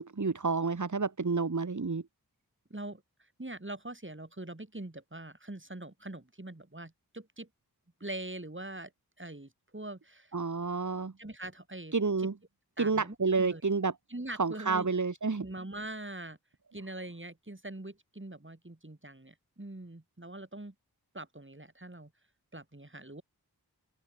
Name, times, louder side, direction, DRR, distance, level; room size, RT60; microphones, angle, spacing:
voice 1, 0.0-2.0 10.3-11.1 11.9-12.3 12.8-13.9 14.4-15.4, right 4 dB, 50° right, 1.7 m, -29 dB
voice 2, 2.7-7.5 8.0-8.9 9.2-10.3 11.2-12.3 12.8-13.6 14.1-14.9 15.4-16.4 16.7-20.7 21.1-22.1 22.5-23.2, right 2 dB, 30° right, 7.1 m, -43 dB
open air
wide cardioid pair, 40°, 39 cm